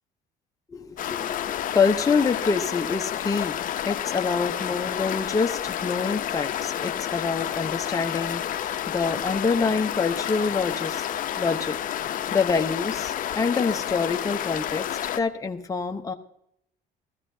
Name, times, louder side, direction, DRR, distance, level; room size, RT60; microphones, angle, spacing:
voice 1, 0.7-3.6 3.8-11.1 11.4-11.8 12.3-14.9 15.2-16.1, left 5 dB, 20° left, 4 dB, 0.9 m, -26 dB
sound 1, 1.0-15.2, left 11 dB, 55° left, 0.7 m, -30 dB
15.5 x 14.0 x 2.7 m, 0.74 s
cardioid pair, 110°, 17 cm